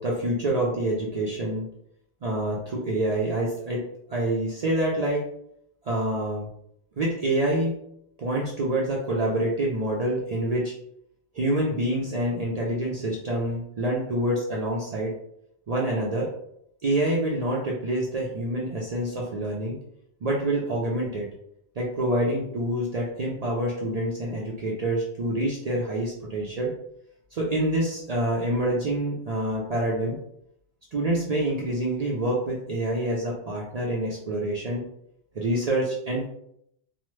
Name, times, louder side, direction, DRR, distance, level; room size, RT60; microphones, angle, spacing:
voice 1, 0.0-1.6 2.2-3.8 4.1-5.2 5.8-6.5 7.0-7.7 8.2-10.7 11.3-15.1 15.7-16.3 16.8-19.8 20.2-21.3 21.8-26.7 27.3-30.2 30.9-34.9 35.3-36.2, right 1 dB, 50° right, -3 dB, 0.5 m, -26 dB
3.0 x 2.0 x 3.1 m, 0.73 s
omnidirectional pair, 1.1 m